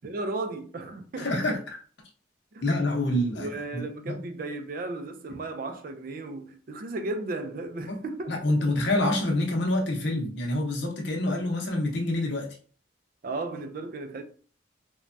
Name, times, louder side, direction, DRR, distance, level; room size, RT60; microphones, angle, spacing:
voice 1, 0.0-1.5 2.5-2.6 3.4-8.4 13.2-14.2, right 2 dB, 45° right, 0.3 m, -35 dB
voice 2, 1.2-1.6 2.6-4.2 7.9-8.0 8.3-12.5, left 1 dB, 60° left, 0.7 m, -27 dB
3.1 x 2.2 x 2.5 m
head